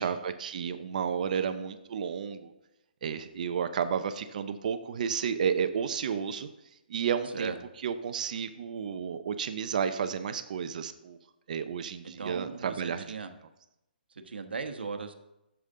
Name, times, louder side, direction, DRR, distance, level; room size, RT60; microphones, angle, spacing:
voice 1, 0.0-2.5 3.0-6.5 6.9-7.5 7.8-11.2 11.5-13.1, right 7 dB, 50° right, 9 dB, 0.6 m, -32 dB
voice 2, 12.0-13.3 14.1-15.1, right 5 dB, 85° right, 7 dB, 1.1 m, -37 dB
9.6 x 7.0 x 3.8 m, 0.90 s
hypercardioid pair, 160°, 5 cm